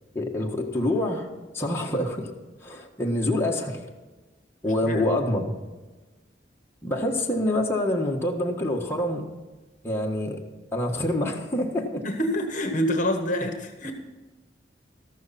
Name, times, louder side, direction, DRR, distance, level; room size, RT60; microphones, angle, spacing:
voice 1, 0.1-1.3 1.5-2.3 2.6-3.8 4.6-5.5 6.8-9.2 9.8-10.4 10.7-12.0, left 1 dB, 15° left, -1 dB, 1.5 m, -26 dB
voice 2, 12.0-13.9, equal, 45° left, 6 dB, 1.3 m, -26 dB
13.5 x 12.5 x 4.2 m, 1.2 s
head